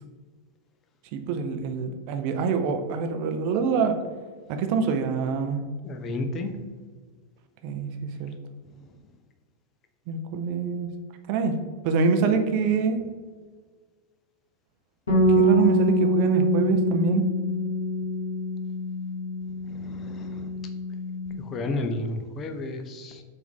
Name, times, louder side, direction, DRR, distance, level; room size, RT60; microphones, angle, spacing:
voice 1, 1.1-4.0 4.5-5.6 7.6-8.3 10.1-10.9 11.3-11.6 11.8-13.0 15.4-17.3, right 5 dB, 45° right, 6 dB, 0.4 m, -25 dB
voice 2, 5.8-6.5 19.7-20.5 21.4-23.2, left 2 dB, 30° left, 6 dB, 0.5 m, -32 dB
Bass guitar, 15.1-21.3, equal, 65° left, 1.2 m, -25 dB
4.6 x 2.6 x 3.6 m, 1.5 s
figure-of-eight pair, 90°, 0 cm